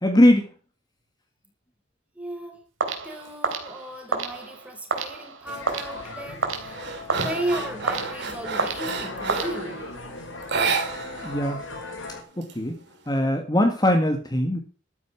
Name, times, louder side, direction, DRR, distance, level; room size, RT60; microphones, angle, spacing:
voice 1, 0.0-0.5 11.2-11.6 12.1-12.8 13.1-14.6, left 1 dB, 20° left, 1.8 m, -21 dB
voice 2, 2.1-2.6 3.0-10.0, right 1 dB, 5° right, 3.8 m, -35 dB
sound 1, 2.8-10.0, right 4 dB, 90° right, 3.1 m, -31 dB
sound 2, 5.5-12.2, left 2 dB, 75° left, 5.3 m, -38 dB
sound 3, 5.5-5.8 6.2-9.7 10.4-11.4 11.6-11.7 12.1-13.1, right 4 dB, 60° right, 3.1 m, -30 dB
13.0 x 9.3 x 5.9 m
head